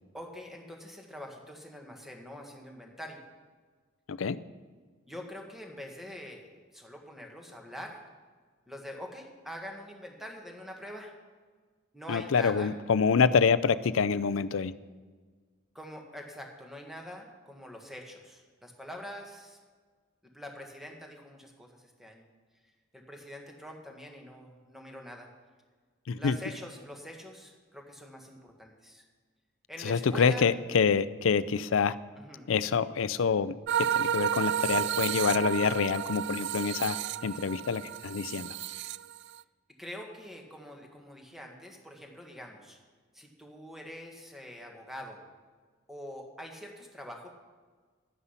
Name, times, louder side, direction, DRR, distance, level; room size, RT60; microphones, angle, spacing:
voice 1, 0.1-3.2 5.1-8.0 8.7-11.1 11.9-12.7 15.7-19.6 20.3-22.2 22.9-25.3 26.2-29.0 29.7-30.5 32.2-32.5 39.8-42.8 43.1-45.2 45.9-47.3, equal, ahead, 1 dB, 1.6 m, -44 dB
voice 2, 12.1-14.7 26.1-26.4 29.8-31.9 32.5-37.0 37.2-38.6, left 5 dB, 70° left, 16 dB, 0.5 m, -26 dB
sound 1, 33.7-39.4, right 10 dB, 60° right, 0.3 m, -31 dB
11.5 x 9.8 x 5.7 m, 1.5 s
head